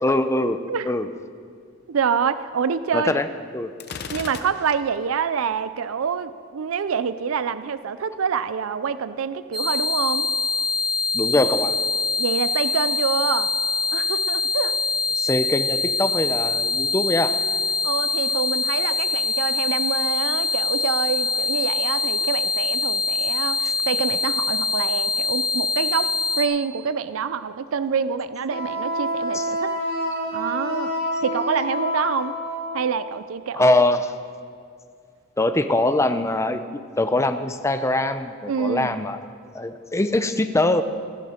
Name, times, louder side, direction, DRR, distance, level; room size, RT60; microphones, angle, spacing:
voice 1, 0.0-1.1 2.9-3.3 3.5-3.7 11.1-11.7 15.2-17.4 29.3-29.5 33.5-34.1 35.4-39.2 39.5-40.8, left 2 dB, 15° left, 9 dB, 0.6 m, -22 dB
voice 2, 1.9-3.2 4.1-10.3 12.2-13.5 13.9-14.8 17.8-26.1 26.4-29.7 30.3-30.9 31.2-32.3 32.7-33.7 38.5-39.0, right 6 dB, 90° right, 13 dB, 0.5 m, -26 dB
Gunshot gunfire, 3.8-5.0, left 5 dB, 55° left, 0.8 m, -36 dB
sound 1, 9.5-26.4, left 3 dB, 20° right, 1.7 m, -24 dB
Wind instrument woodwind instrument, 28.5-32.9, equal, 55° right, 1.9 m, -27 dB
15.5 x 14.5 x 4.4 m, 2.2 s
head